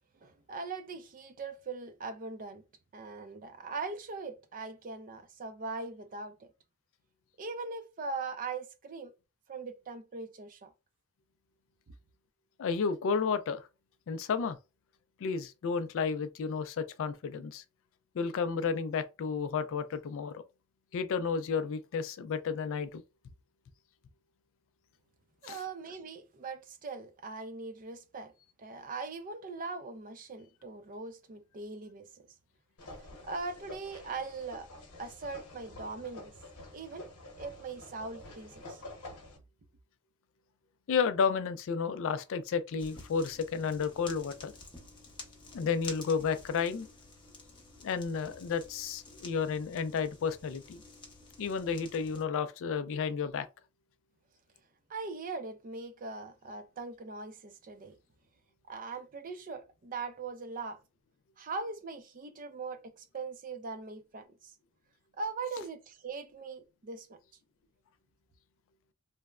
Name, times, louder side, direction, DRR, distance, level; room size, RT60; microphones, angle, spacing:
voice 1, 0.2-2.6 2.9-6.5 7.4-9.1 9.5-10.7 25.4-28.3 28.6-32.2 33.3-34.7 35.0-36.3 36.7-37.1 37.4-38.8 54.9-57.9 58.7-60.8 61.4-64.5 65.2-67.2, right 4 dB, 40° right, 0.4 m, -40 dB
voice 2, 12.6-13.6 14.1-14.6 15.2-17.6 18.2-20.4 20.9-23.0 25.5-25.6 40.9-44.5 45.5-46.9 47.8-50.8 51.4-53.5, left 5 dB, 60° left, 0.3 m, -32 dB
sound 1, 32.8-39.4, left 1 dB, 85° left, 0.9 m, -49 dB
sound 2, 42.8-52.2, left 3 dB, 20° left, 0.7 m, -51 dB
3.1 x 2.0 x 2.3 m
head